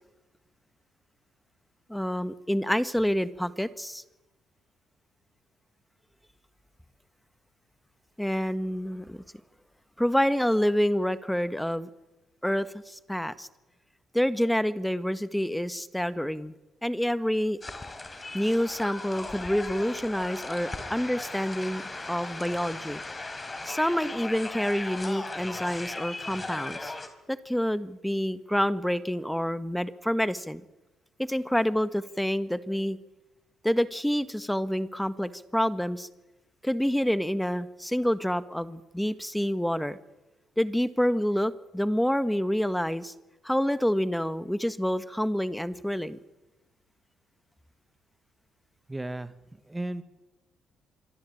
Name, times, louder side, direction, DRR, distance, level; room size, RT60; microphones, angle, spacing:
voice 1, 1.9-4.0 8.2-9.2 10.0-11.9 12.4-13.5 14.1-16.5 16.8-17.6 18.3-21.8 22.1-23.0 23.6-26.9 27.3-30.6 31.3-33.0 33.6-36.1 36.6-40.0 40.6-43.1 43.4-46.2, equal, 5° left, 13 dB, 1.6 m, -27 dB
sound 1, 17.6-27.1, left 2 dB, 25° left, 4.7 m, -37 dB
voice 2, 48.9-49.3 49.7-50.0, right 1 dB, 15° right, 11 dB, 2.2 m, -34 dB
26.0 x 23.5 x 8.7 m, 1.1 s
hypercardioid pair, 55°, 0 cm